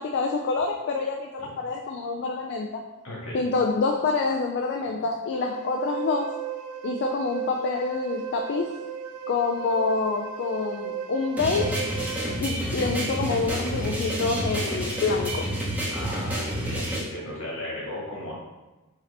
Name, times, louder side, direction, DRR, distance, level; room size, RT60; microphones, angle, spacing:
voice 1, 0.0-2.8 3.3-6.4 6.8-8.7 9.3-12.0 12.4-15.5, left 4 dB, 50° left, 2 dB, 0.3 m, -27 dB
voice 2, 3.0-3.4 15.9-18.3, left 1 dB, 70° left, -4 dB, 1.5 m, -36 dB
sound 1, 5.3-12.4, right 8 dB, 85° right, 0.3 m, -35 dB
sound 2, 11.4-17.0, equal, 5° right, 0.8 m, -29 dB
4.8 x 2.8 x 3.3 m, 1.1 s
head